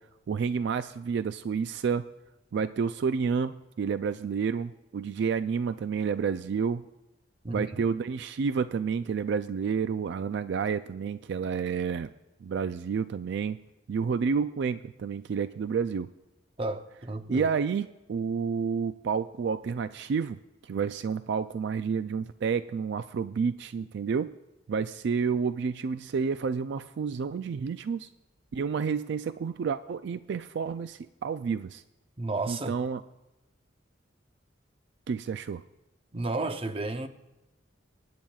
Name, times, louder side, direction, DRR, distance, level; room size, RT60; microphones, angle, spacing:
voice 1, 0.3-2.1 2.5-6.8 7.5-12.1 12.4-13.6 13.9-16.1 17.3-20.4 20.6-24.3 24.7-28.1 28.5-31.8 32.5-33.0 35.1-35.6, right 6 dB, 65° right, 0.3 m, -30 dB
voice 2, 7.4-7.8 16.6-17.5 32.2-32.8 36.1-37.1, right 2 dB, 30° right, 0.6 m, -32 dB
23.5 x 10.5 x 2.3 m
head